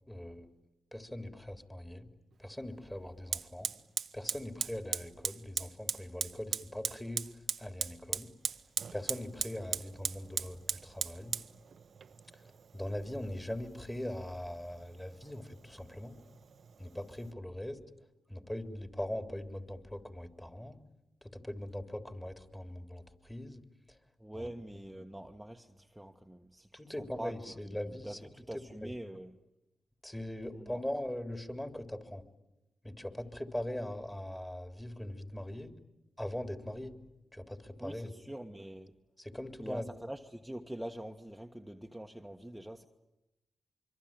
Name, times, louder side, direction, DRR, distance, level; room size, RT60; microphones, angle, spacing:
voice 1, 0.1-0.5 0.9-2.1 2.4-3.7 4.1-7.3 7.6-8.3 8.9-11.4 12.3-16.2 16.8-17.8 18.3-20.8 21.2-23.6 23.9-24.0 24.3-24.5 26.7-28.2 28.5-28.9 30.0-32.2 32.8-35.8 36.2-37.0 37.3-38.1 39.2-39.8, left 1 dB, 15° left, 3.5 m, -41 dB
Fire, 2.3-2.4 3.3-17.3, right 6 dB, 65° right, 1.0 m, -40 dB
voice 2, 24.2-29.4 30.5-30.8 37.8-38.9 39.6-42.9, right 1 dB, 5° right, 1.6 m, -45 dB
25.5 x 24.0 x 9.0 m
supercardioid pair, 50°, 0 cm